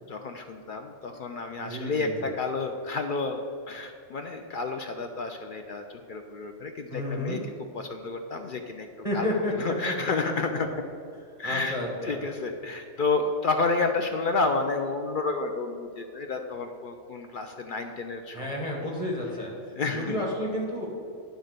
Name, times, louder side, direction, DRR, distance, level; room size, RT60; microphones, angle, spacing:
voice 1, 0.1-3.4 3.7-7.4 7.7-8.9 9.1-9.3 9.6-10.7 11.4-11.8 12.0-18.9 19.8-20.2, left 3 dB, 60° left, 5 dB, 0.5 m, -30 dB
voice 2, 1.6-2.3 6.9-7.4 9.0-10.1 10.5-10.6 11.4-12.2 18.3-20.9, left 1 dB, 30° left, -2 dB, 1.7 m, -31 dB
9.2 x 3.8 x 6.5 m, 2.4 s
omnidirectional pair, 1.2 m